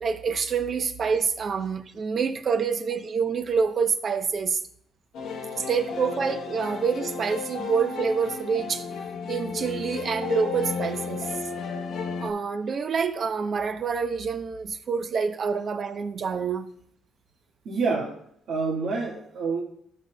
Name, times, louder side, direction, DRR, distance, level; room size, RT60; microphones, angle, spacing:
voice 1, 0.0-4.6 5.5-8.9 9.3-11.3 12.2-16.7, right 5 dB, 50° right, 0.7 m, -27 dB
sound 1, 5.1-12.3, left 5 dB, 80° left, 1.0 m, -33 dB
voice 2, 17.6-18.2 18.5-19.6, right 4 dB, 75° right, 1.5 m, -27 dB
12.5 x 6.6 x 2.2 m
cardioid pair, 90°, 0 cm